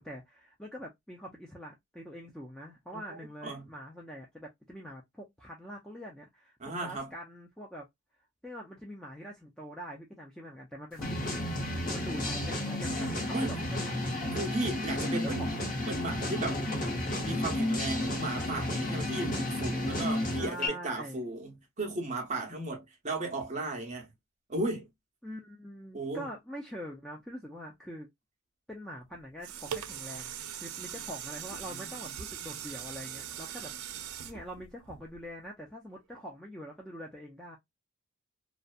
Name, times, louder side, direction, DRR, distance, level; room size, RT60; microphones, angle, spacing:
voice 1, 0.0-7.9 8.4-13.8 15.1-15.5 20.4-21.2 25.2-28.1 28.7-33.7 34.2-37.6, equal, 5° left, 0.3 m, -44 dB
voice 2, 2.9-3.7 6.6-7.1 11.8-12.4 13.3-13.6 14.3-15.5 15.8-16.6 17.2-24.1 24.5-24.9 25.9-26.3 31.7-32.1, right 2 dB, 35° right, 0.7 m, -36 dB
sound 1, 11.0-20.7, left 1 dB, 40° left, 0.7 m, -32 dB
sound 2, 29.1-35.4 36.0-36.1, right 9 dB, 90° right, 0.4 m, -41 dB
2.7 x 2.1 x 2.3 m
head